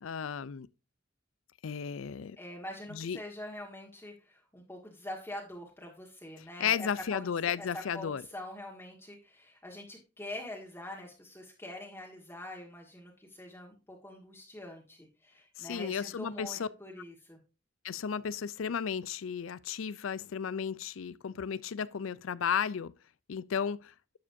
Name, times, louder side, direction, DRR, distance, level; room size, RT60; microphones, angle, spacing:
voice 1, 0.0-0.7 1.6-2.4 2.9-3.2 6.4-8.2 15.6-16.7 17.8-22.9 23.3-23.9, left 7 dB, 80° left, 0.4 m, -34 dB
voice 2, 2.4-17.4, left 1 dB, 10° left, 1.6 m, -44 dB
11.5 x 7.4 x 2.7 m
head